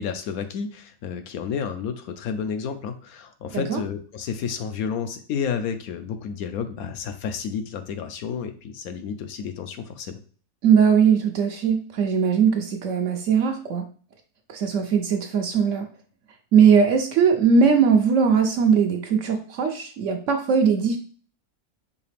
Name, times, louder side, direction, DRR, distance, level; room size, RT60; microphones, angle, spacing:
voice 1, 0.0-10.2, left 7 dB, 75° left, 8 dB, 1.0 m, -31 dB
voice 2, 10.6-13.8 14.5-15.9 16.5-21.0, right 6 dB, 65° right, 5 dB, 0.8 m, -20 dB
4.9 x 2.8 x 3.3 m, 0.41 s
omnidirectional pair, 1.6 m